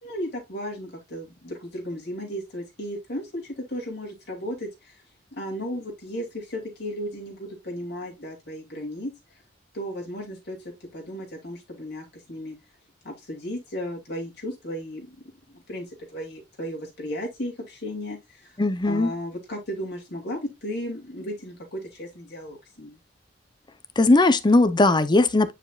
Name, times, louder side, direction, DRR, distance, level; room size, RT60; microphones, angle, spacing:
voice 1, 0.0-5.0 5.3-9.4 9.7-12.6 13.0-15.2 15.5-18.6 18.8-23.0, equal, 60° left, 2.7 m, -35 dB
voice 2, 18.6-19.1 24.0-25.5, left 2 dB, 25° left, 0.7 m, -18 dB
9.2 x 5.0 x 2.4 m
head